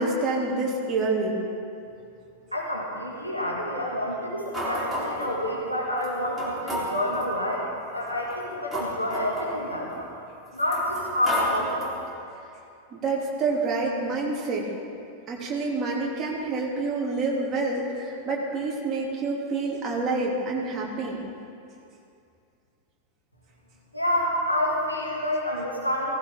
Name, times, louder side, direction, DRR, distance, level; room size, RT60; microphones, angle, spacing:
voice 1, 0.0-1.4 12.9-14.7 15.3-21.2, right 3 dB, 25° right, -2 dB, 2.9 m, -27 dB
voice 2, 2.5-10.1 10.5-11.8 23.9-26.1, left 1 dB, 90° left, -4 dB, 2.5 m, -28 dB
sound 1, 4.5-5.3 6.0-6.1 6.4-7.3 8.1-10.0 10.6-12.1, equal, 5° right, 4.1 m, -32 dB
17.0 x 15.0 x 3.8 m, 2.6 s
figure-of-eight pair, 90°, 0 cm